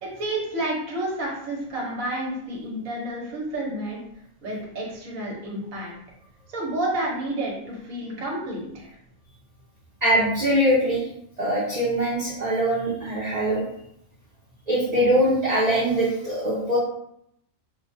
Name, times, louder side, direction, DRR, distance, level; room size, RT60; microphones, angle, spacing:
voice 1, 0.0-4.0 4.4-6.0 6.5-9.0, right 1 dB, 80° right, -3 dB, 1.5 m, -30 dB
voice 2, 10.0-11.1 11.4-13.6 14.7-16.8, equal, 35° right, -7 dB, 0.9 m, -22 dB
6.1 x 2.4 x 2.7 m, 0.75 s
omnidirectional pair, 1.4 m